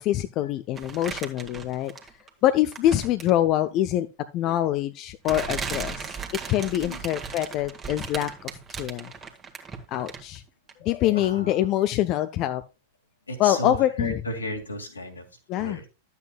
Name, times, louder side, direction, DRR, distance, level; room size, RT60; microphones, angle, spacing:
voice 1, 0.0-1.9 2.4-4.1 4.3-6.1 6.5-8.5 8.8-9.1 9.9-10.4 10.8-12.6 13.4-14.1 15.5-15.8, left 13 dB, 40° left, 11 dB, 0.5 m, -24 dB
sound 1, 0.8-2.3 2.7-3.4 4.4-4.6 5.2-10.4 10.7-10.8, right 5 dB, 20° right, 1.5 m, -36 dB
voice 2, 11.1-11.7 13.3-15.2 15.6-15.9, equal, 80° left, 3 dB, 2.2 m, -34 dB
12.0 x 8.1 x 2.3 m, 0.29 s
figure-of-eight pair, 90°, 0 cm